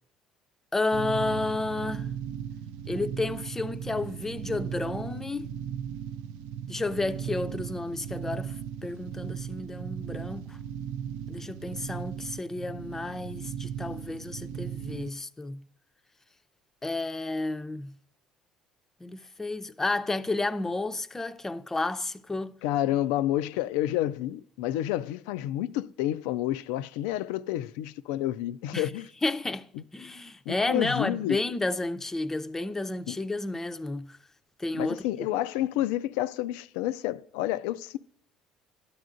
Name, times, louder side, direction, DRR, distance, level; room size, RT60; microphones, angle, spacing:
voice 1, 0.7-2.1 2.9-5.5 6.7-8.6 8.8-10.6 11.3-15.6 16.8-17.9 19.0-22.6 28.7-28.9 29.2-29.7 29.9-34.2 34.6-35.1, left 2 dB, 15° left, 0.5 m, -31 dB
sound 1, 0.9-15.1, right 8 dB, 80° right, 0.4 m, -37 dB
voice 2, 22.6-29.1 29.8-29.9 30.5-31.4 33.1-33.2 34.7-38.0, left 13 dB, 85° left, 0.3 m, -29 dB
12.0 x 9.3 x 2.5 m
supercardioid pair, 85°, 2 cm